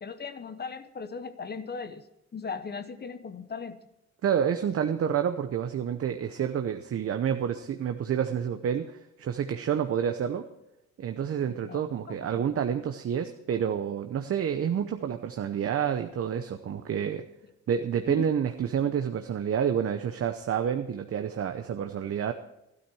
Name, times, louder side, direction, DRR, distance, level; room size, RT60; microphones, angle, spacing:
voice 1, 0.0-2.0 2.3-3.8 11.5-12.3 18.1-18.2, left 5 dB, 35° left, 12 dB, 0.9 m, -38 dB
voice 2, 4.2-10.5 11.0-17.2 17.7-22.3, right 8 dB, 50° right, 7 dB, 0.8 m, -29 dB
13.0 x 12.5 x 4.8 m, 0.86 s
cardioid pair, 90°, 30 cm